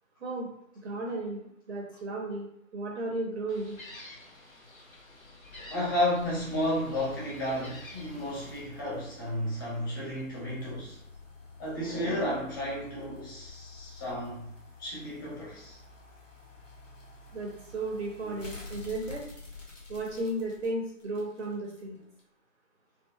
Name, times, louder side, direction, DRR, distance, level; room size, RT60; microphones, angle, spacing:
voice 1, 0.7-3.8 17.3-19.2 19.9-22.0, right 2 dB, 55° right, -1 dB, 0.8 m, -34 dB
Gull seagull, 3.5-8.6, left 2 dB, 80° left, 1.1 m, -49 dB
voice 2, 5.7-11.0 11.6-14.5 14.8-15.8 18.2-18.4, left 1 dB, 15° left, -6 dB, 0.7 m, -32 dB
sound 1, 6.1-21.8 22.2-22.3, left 3 dB, 65° left, 1.3 m, -49 dB
4.4 x 2.7 x 2.2 m, 0.72 s
figure-of-eight pair, 135°, 41 cm